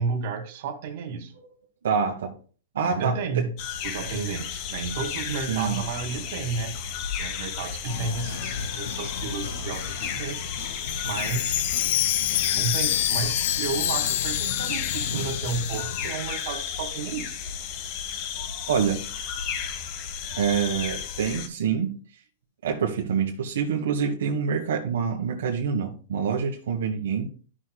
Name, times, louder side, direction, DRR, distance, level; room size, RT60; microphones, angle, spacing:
voice 1, 0.0-1.3 2.8-3.6 3.8-6.9 7.2-10.4 11.0-11.6 12.2-17.4, right 5 dB, 50° right, 2.1 m, -32 dB
voice 2, 1.8-2.3 2.7-3.4 5.5-5.8 15.1-15.2 18.7-19.0 20.3-22.0 22.6-27.3, right 6 dB, 80° right, 1.4 m, -26 dB
sound 1, 3.6-21.5, left 7 dB, 40° left, 1.0 m, -34 dB
sound 2, 7.9-16.1, left 5 dB, 80° left, 2.2 m, -37 dB
Chime, 10.8-16.8 17.1-17.2 17.8-17.9, left 12 dB, 55° left, 0.5 m, -27 dB
11.5 x 6.4 x 2.3 m
hypercardioid pair, 150°, 0 cm